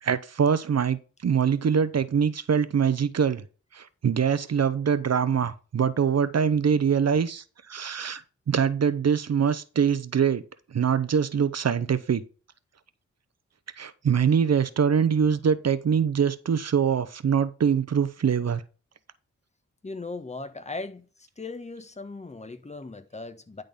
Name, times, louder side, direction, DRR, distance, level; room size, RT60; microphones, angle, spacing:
voice 1, 0.0-3.4 3.7-8.2 8.5-10.4 10.7-12.2 13.8-18.6, right 7 dB, 55° right, 0.8 m, -24 dB
voice 2, 19.8-21.1 21.4-23.6, left 3 dB, 20° left, 1.2 m, -38 dB
10.5 x 3.9 x 5.3 m
cardioid pair, 65°, 31 cm